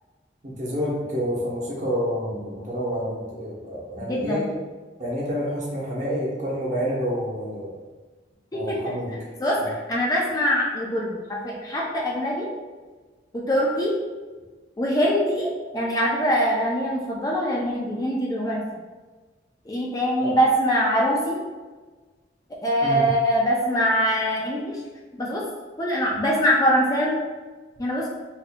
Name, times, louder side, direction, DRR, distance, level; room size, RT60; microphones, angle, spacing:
voice 1, 0.4-4.5 5.0-7.7 8.5-9.1 9.6-9.7 20.2-20.3 22.8-23.0, equal, 40° right, -5 dB, 0.9 m, -28 dB
voice 2, 4.1-4.5 8.5-8.9 9.4-12.5 13.3-13.9 14.8-18.6 19.7-21.4 22.6-24.8 25.2-25.4 25.8-27.2 27.8-28.1, equal, 20° left, -3 dB, 0.4 m, -23 dB
4.2 x 2.6 x 2.2 m, 1.3 s
head